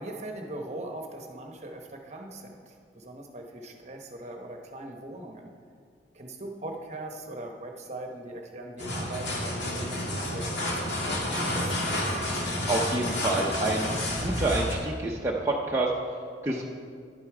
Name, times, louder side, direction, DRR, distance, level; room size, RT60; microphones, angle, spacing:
voice 1, 0.0-5.5 6.1-11.9, right 1 dB, 40° right, 2 dB, 1.0 m, -40 dB
sound 1, 8.8-14.7, left 1 dB, 75° left, 1.9 m, -30 dB
voice 2, 12.4-15.9 16.4-16.6, right 2 dB, 15° right, -3 dB, 0.7 m, -28 dB
11.0 x 8.2 x 4.9 m, 2.2 s
head